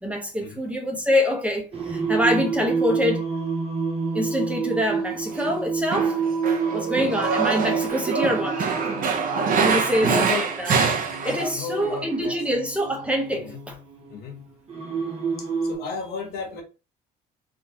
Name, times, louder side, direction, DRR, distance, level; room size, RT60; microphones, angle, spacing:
voice 1, 0.0-3.2 4.1-6.2 6.7-8.7 9.6-10.8 11.2-13.8, equal, 5° right, 1.0 m, -25 dB
Singing, 1.7-15.8, right 5 dB, 35° right, 1.2 m, -29 dB
Male speech man speaking, 5.3-5.6 5.9-11.5 11.8-11.9, right 5 dB, 55° right, 0.8 m, -25 dB
voice 2, 10.0-10.5 11.2-12.4 13.4-13.6 14.1-14.4 15.4-16.6, left 5 dB, 70° left, 1.3 m, -33 dB
3.8 x 2.6 x 2.9 m
cardioid pair, 110°, 17 cm